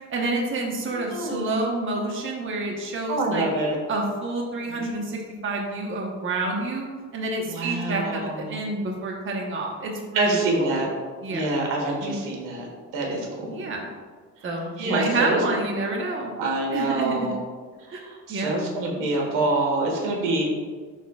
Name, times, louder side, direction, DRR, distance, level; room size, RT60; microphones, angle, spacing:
voice 1, 0.1-3.5 3.9-6.9 7.1-10.8 11.2-11.5 12.0-12.2 13.5-13.8 14.4-16.3 16.7-17.3 17.9-18.0 18.3-18.6, right 2 dB, 40° right, -1 dB, 1.1 m, -28 dB
voice 2, 0.9-1.6 3.1-3.8 4.7-4.8 7.5-8.6 10.1-10.9 11.3-12.7 12.9-13.6 14.8-15.4 16.4-17.4 17.9-20.4, right 2 dB, 85° right, 0 dB, 1.5 m, -26 dB
11.5 x 4.2 x 2.4 m, 1.5 s
cardioid pair, 100°, 31 cm